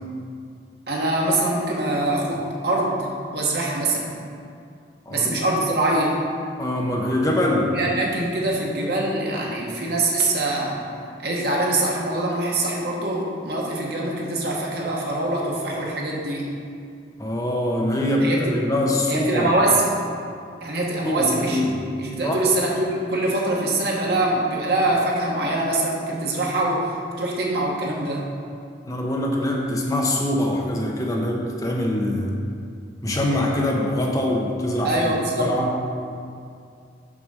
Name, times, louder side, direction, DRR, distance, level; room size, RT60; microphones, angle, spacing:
voice 1, 0.9-4.1 5.1-6.1 7.7-10.8 11.2-16.5 18.2-18.6 19.1-19.9 20.6-21.7 22.0-28.3 34.8-35.5, right 2 dB, 60° right, -3 dB, 1.3 m, -24 dB
voice 2, 5.1-5.4 6.6-7.7 17.2-19.5 21.0-21.8 22.2-22.4 28.8-32.3 33.0-35.7, left 1 dB, 20° left, -1 dB, 0.8 m, -23 dB
6.2 x 5.2 x 6.2 m, 2.3 s
head